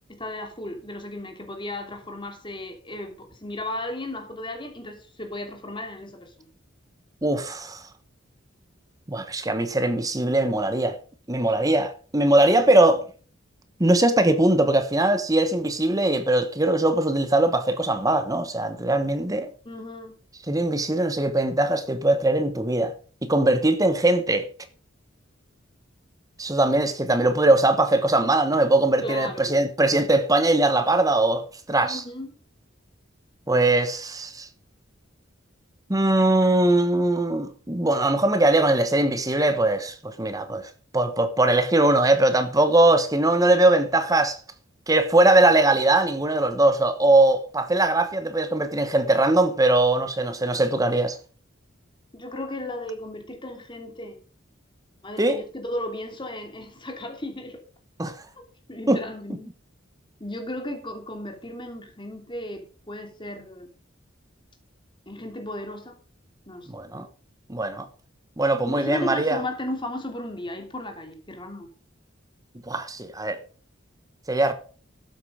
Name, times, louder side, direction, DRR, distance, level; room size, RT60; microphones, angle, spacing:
voice 1, 0.1-6.5 19.6-20.1 29.0-29.5 31.8-32.3 52.1-54.2 55.0-57.6 58.7-59.5 60.2-63.7 65.1-66.0 66.5-66.7 68.6-71.7, left 1 dB, 25° left, 2.8 m, -35 dB
voice 2, 7.2-7.8 9.1-11.0 11.3-13.0 13.8-19.5 20.5-22.9 23.2-24.4 26.4-32.0 33.5-34.5 35.9-44.4 44.9-51.2 55.2-55.4 58.0-58.1 58.9-59.0 66.7-67.1 67.5-67.9 68.4-69.4 72.7-73.4 74.3-74.5, right 2 dB, 20° right, 1.2 m, -21 dB
13.0 x 8.3 x 5.0 m
head